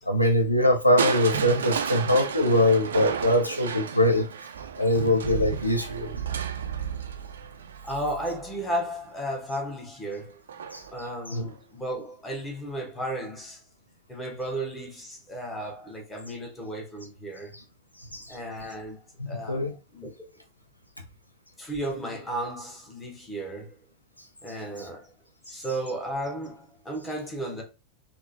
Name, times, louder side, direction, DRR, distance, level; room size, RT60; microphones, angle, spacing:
voice 1, 0.1-4.3 4.8-6.1 10.7-10.8 11.3-11.5 18.1-18.4 19.2-19.7, left 1 dB, 85° left, 0.5 m, -23 dB
Crushing, 1.0-8.9 10.5-11.0 11.5-11.6, right 7 dB, 65° right, 0.3 m, -32 dB
voice 2, 7.8-10.4 10.9-13.6 14.1-17.5 18.3-19.0 19.3-19.6 19.9-20.4 21.6-23.8 24.4-25.1 25.5-27.6, right 1 dB, 10° left, 1.0 m, -34 dB
3.5 x 2.1 x 2.5 m
figure-of-eight pair, 90°, 0 cm